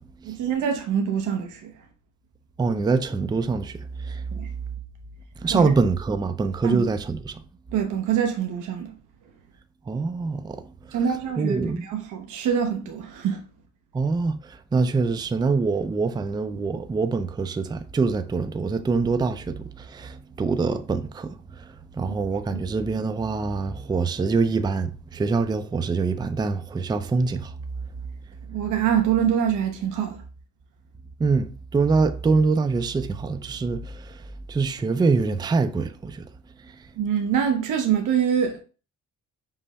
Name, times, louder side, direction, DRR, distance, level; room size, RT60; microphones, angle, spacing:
voice 1, 0.2-1.7 4.3-4.5 5.5-5.7 6.6-6.8 7.7-8.9 10.9-13.4 28.5-30.2 37.0-38.6, right 8 dB, 85° right, 0.6 m, -25 dB
voice 2, 2.6-4.2 5.4-7.4 9.9-10.6 10.9-11.0 11.4-11.8 13.9-27.5 31.2-34.2 34.5-36.3 36.6-36.7, right 4 dB, 15° right, 0.4 m, -25 dB
5.5 x 2.0 x 4.0 m
cardioid pair, 90°, 30 cm